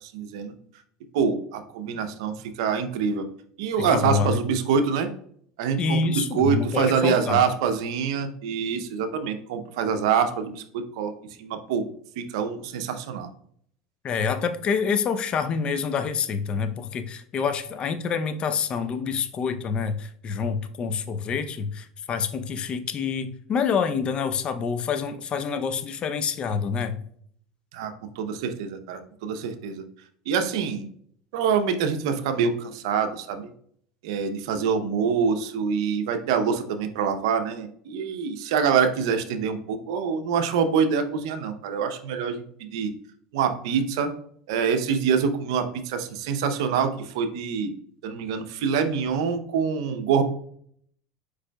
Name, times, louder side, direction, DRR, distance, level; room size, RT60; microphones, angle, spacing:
voice 1, 0.0-0.5 1.1-3.3 3.6-5.1 5.6-11.1 11.4-11.9 12.2-13.3 27.7-29.8 30.3-30.8 31.3-33.5 34.0-42.9 43.3-44.1 44.5-47.7 48.0-50.2, right 6 dB, 75° right, 8 dB, 0.6 m, -25 dB
voice 2, 3.8-4.4 5.8-7.4 14.0-27.0, left 6 dB, 35° left, 10 dB, 0.5 m, -27 dB
4.9 x 4.7 x 2.2 m, 0.63 s
supercardioid pair, 105°, 3 cm